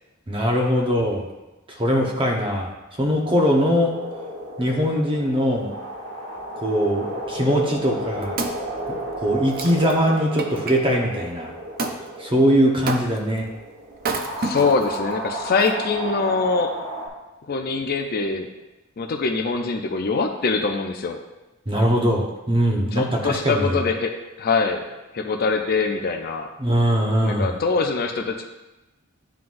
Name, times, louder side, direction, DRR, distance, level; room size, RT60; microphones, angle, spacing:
voice 1, 0.3-1.3 1.8-2.7 3.0-3.9 4.6-5.7 6.6-8.4 8.9-11.5 12.2-13.5 21.7-23.8 26.6-27.6, equal, 25° right, 0 dB, 0.9 m, -21 dB
sound 1, 3.2-17.1, equal, 70° right, 1.3 m, -33 dB
Wood, 7.9-10.8 11.8-12.0 12.9-13.4 14.0-15.0 15.6-15.7, right 3 dB, 45° right, 0.5 m, -30 dB
voice 2, 14.4-16.7 17.5-18.5 19.0-21.2 22.9-24.9 25.1-26.5 27.2-28.4, left 4 dB, 45° left, 4 dB, 0.5 m, -23 dB
11.0 x 3.9 x 2.5 m, 1.0 s
head